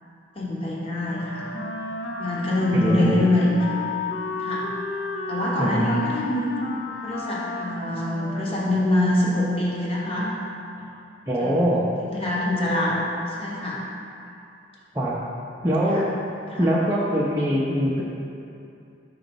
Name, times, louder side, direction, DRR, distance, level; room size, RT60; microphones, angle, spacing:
voice 1, 0.3-1.5 2.2-3.8 4.4-4.7 5.3-6.6 7.0-10.3 11.4-13.8 15.9-16.0 16.5-16.7, left 1 dB, 30° left, -5 dB, 1.0 m, -25 dB
Wind instrument woodwind instrument, 1.0-9.3, left 3 dB, 60° left, 0.5 m, -33 dB
voice 2, 2.7-3.3 5.6-5.9 11.3-11.9 14.9-15.2 15.6-16.0 16.6-18.0, equal, 15° right, -8 dB, 0.5 m, -23 dB
5.0 x 4.0 x 5.2 m, 2.6 s
head